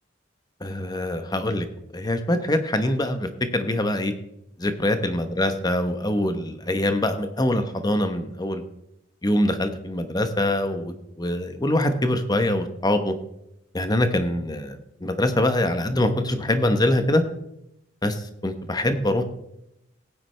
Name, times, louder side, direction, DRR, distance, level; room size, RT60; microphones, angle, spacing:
voice 1, 0.6-1.7 1.9-4.1 4.6-8.6 9.2-13.1 13.7-17.2 18.0-19.2, left 1 dB, 20° left, 8 dB, 1.0 m, -24 dB
17.5 x 9.3 x 3.3 m, 0.82 s
head